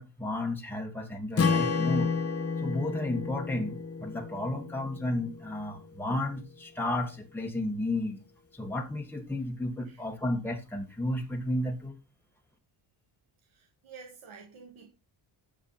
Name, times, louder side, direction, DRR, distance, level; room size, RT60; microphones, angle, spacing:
voice 1, 0.0-2.1 2.6-8.2 8.5-11.9, left 1 dB, 5° left, 1.6 m, -33 dB
Strum, 1.4-5.6, left 5 dB, 30° left, 1.2 m, -30 dB
voice 2, 13.5-14.9, right 5 dB, 85° right, 2.8 m, -50 dB
10.5 x 7.3 x 4.2 m
wide cardioid pair, 170°, 46 cm